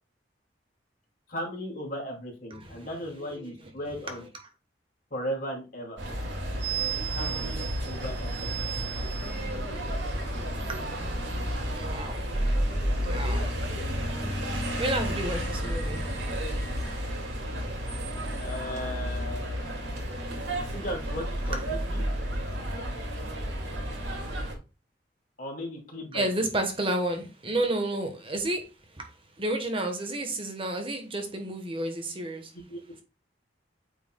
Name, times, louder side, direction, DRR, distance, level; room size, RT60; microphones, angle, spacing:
voice 1, 1.3-4.3 5.1-6.0 7.1-8.5 13.3-13.5 18.3-20.0 20.6-22.1 25.4-26.5 32.5-33.0, equal, 50° left, 2.6 m, -37 dB
voice 2, 2.5-2.9 3.3-3.5 10.7-18.5 20.0-20.7 26.1-32.5, right 1 dB, 30° right, 1.2 m, -33 dB
sound 1, 6.0-24.6, right 1 dB, 85° right, 2.2 m, -31 dB
8.9 x 4.7 x 2.3 m
head